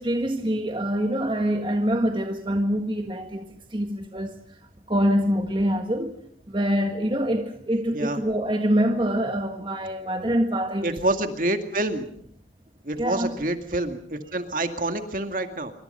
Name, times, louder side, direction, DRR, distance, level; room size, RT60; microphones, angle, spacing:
voice 1, 0.0-4.4 4.9-6.2 6.5-11.0 13.0-13.4, equal, 25° right, 1.7 m, -25 dB
voice 2, 10.8-12.1 12.8-15.7, right 1 dB, 45° right, 2.2 m, -27 dB
26.5 x 24.5 x 5.6 m
head